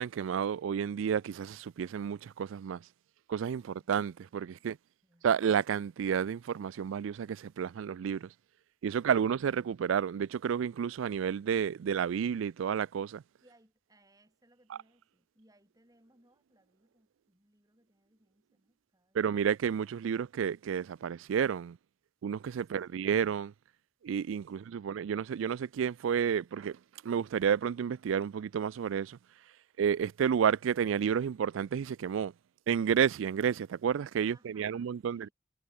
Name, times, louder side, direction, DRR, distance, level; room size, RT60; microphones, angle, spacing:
voice 1, 0.0-2.8 3.3-4.8 5.2-8.3 8.8-13.2 19.1-21.8 22.2-23.5 24.0-26.8 27.0-29.2 29.8-32.3 32.7-35.3, right 7 dB, 75° right, 0.3 m, -31 dB
voice 2, 3.5-3.9 5.0-5.6 13.4-19.3 22.6-23.3 34.2-35.3, right 1 dB, 20° right, 5.7 m, -67 dB
head